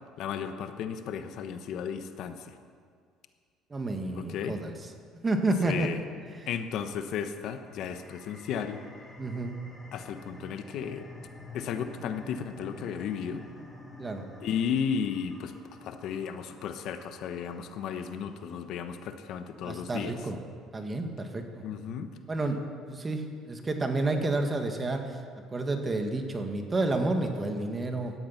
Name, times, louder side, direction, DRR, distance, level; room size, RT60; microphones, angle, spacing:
voice 1, 0.2-2.5 4.1-4.6 5.6-6.0 6.5-8.8 9.9-11.0 11.5-13.4 14.4-15.5 15.8-20.1 21.6-22.1, left 7 dB, 65° left, 8 dB, 1.1 m, -34 dB
voice 2, 3.7-4.7 5.2-5.9 9.2-9.5 14.0-14.2 19.6-20.4 20.7-21.6 22.3-22.6 22.9-25.2 25.5-28.1, right 2 dB, 25° right, 5 dB, 1.9 m, -30 dB
sound 1, 7.7-18.8, left 2 dB, 10° left, 2.3 m, -49 dB
17.0 x 12.0 x 5.9 m, 2.1 s
cardioid pair, 100°, 0 cm